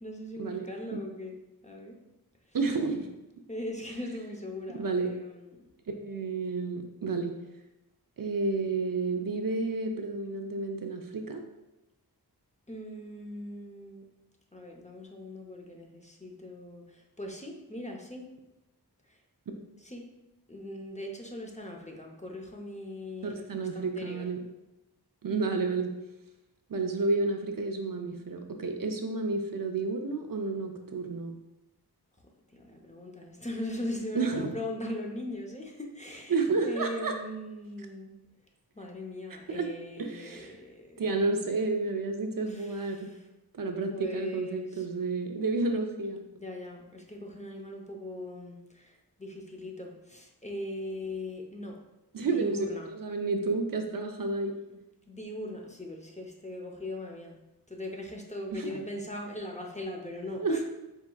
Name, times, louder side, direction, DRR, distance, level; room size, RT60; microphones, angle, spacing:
voice 1, 0.0-1.3 1.6-2.0 3.5-5.5 12.7-14.1 14.5-18.3 19.1-19.2 19.8-20.1 20.5-24.2 32.5-36.3 36.6-38.2 38.8-41.2 42.5-43.2 43.9-44.9 46.3-51.8 52.2-52.9 55.1-57.4 57.7-60.6, left 1 dB, 20° left, 0 dB, 0.6 m, -39 dB
voice 2, 2.5-3.1 4.7-5.1 5.9-7.3 8.2-11.4 23.2-24.4 25.2-25.9 26.7-31.4 34.1-34.5 36.3-37.2 39.5-39.7 40.0-40.5 41.0-43.1 43.5-46.2 52.1-54.5 58.5-58.8 60.4-60.6, right 3 dB, 60° right, 4 dB, 0.5 m, -31 dB
4.7 x 3.5 x 2.3 m, 0.97 s
wide cardioid pair, 55°, 39 cm